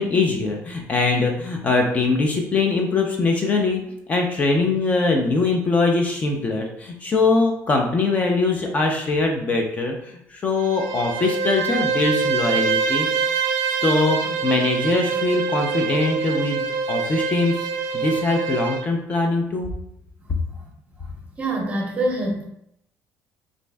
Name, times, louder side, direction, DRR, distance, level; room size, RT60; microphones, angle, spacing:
voice 1, 0.0-3.8 4.1-13.3 13.8-17.7 17.9-19.7, left 3 dB, 25° left, 2 dB, 0.4 m, -22 dB
Bowed string instrument, 10.6-18.9, right 5 dB, 90° right, 0.4 m, -25 dB
voice 2, 21.4-22.4, right 1 dB, 25° right, 0 dB, 0.7 m, -24 dB
3.1 x 2.5 x 3.3 m, 0.76 s
cardioid pair, 160°, 6 cm